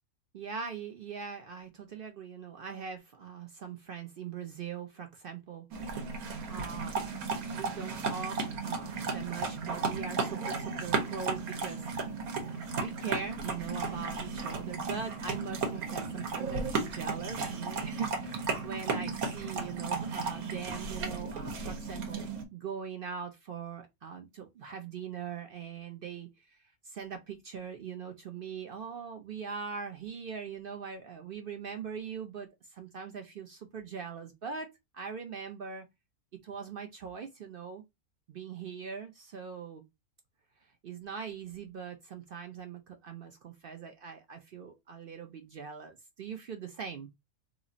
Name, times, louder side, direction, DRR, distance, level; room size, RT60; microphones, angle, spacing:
voice 1, 0.3-6.2 6.5-6.9 7.5-11.8 12.8-34.7 34.9-35.9 36.4-37.8 38.3-39.8 40.8-47.1, right 6 dB, 65° right, 0.5 m, -41 dB
sound 1, 5.7-22.4, right 4 dB, 80° right, 1.3 m, -35 dB
3.0 x 2.4 x 3.8 m
omnidirectional pair, 1.5 m